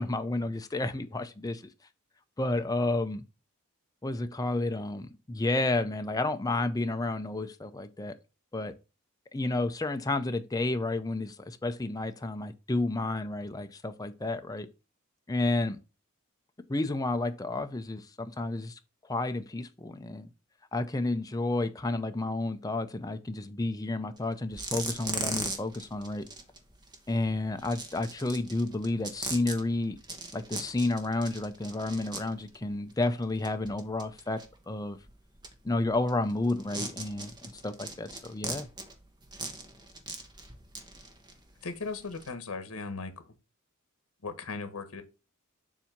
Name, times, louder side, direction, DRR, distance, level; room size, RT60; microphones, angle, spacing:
voice 1, 0.0-1.6 2.4-3.2 4.0-8.2 8.5-8.7 9.3-14.7 15.3-15.8 16.7-18.7 19.1-20.3 20.7-26.3 27.1-30.0 30.3-35.0 35.6-37.3 37.6-38.7, left 2 dB, 15° left, 0.5 m, -31 dB
sound 1, 24.2-24.3 24.5-42.3, right 3 dB, 20° right, 1.0 m, -40 dB
voice 2, 41.6-43.1 44.2-45.0, left 4 dB, 85° left, 1.0 m, -37 dB
7.3 x 2.7 x 5.8 m
head